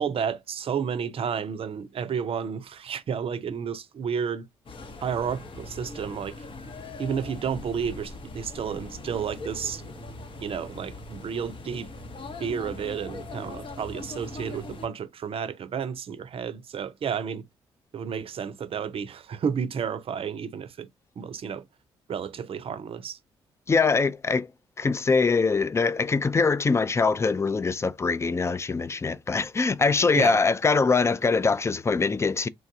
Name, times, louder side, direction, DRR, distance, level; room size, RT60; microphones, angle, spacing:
voice 1, 0.0-4.5 5.0-6.4 7.0-9.8 10.4-11.9 12.4-17.4 17.9-20.9 21.2-21.6 22.1-23.2 30.1-30.4, right 7 dB, 55° right, 0.5 m, -31 dB
sound 1, 4.7-14.9, left 2 dB, 50° left, 0.8 m, -41 dB
voice 2, 23.7-24.5 24.8-32.5, left 4 dB, 25° left, 0.4 m, -23 dB
3.2 x 2.3 x 2.6 m
hypercardioid pair, 50°, 12 cm